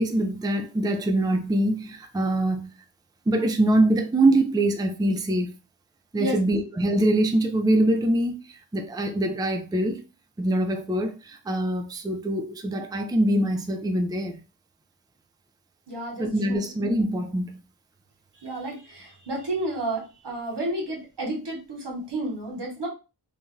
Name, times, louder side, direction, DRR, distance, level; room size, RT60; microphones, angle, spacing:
voice 1, 0.0-2.7 3.3-5.5 6.1-10.0 10.4-14.4 16.2-17.6, right 1 dB, 10° right, 0.4 m, -24 dB
voice 2, 6.2-6.6 15.9-16.6 18.3-22.9, right 1 dB, 80° right, 1.1 m, -31 dB
2.5 x 2.2 x 3.1 m
wide cardioid pair, 50°, 41 cm